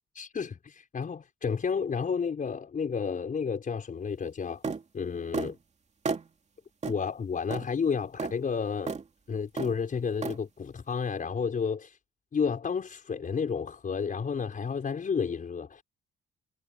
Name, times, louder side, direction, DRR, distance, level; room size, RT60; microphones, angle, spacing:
voice 1, 0.2-4.6 4.9-5.6 6.9-8.9 9.3-12.0 12.3-15.8, left 6 dB, 45° left, 5.3 m, -31 dB
sound 1, 4.6-4.8 5.3-5.5 6.1-6.3 6.8-7.0 7.5-7.7 8.2-8.3 8.9-9.0 9.6-9.8 10.2-10.4, right 4 dB, 35° right, 2.5 m, -32 dB
cardioid pair, 90°, 20 cm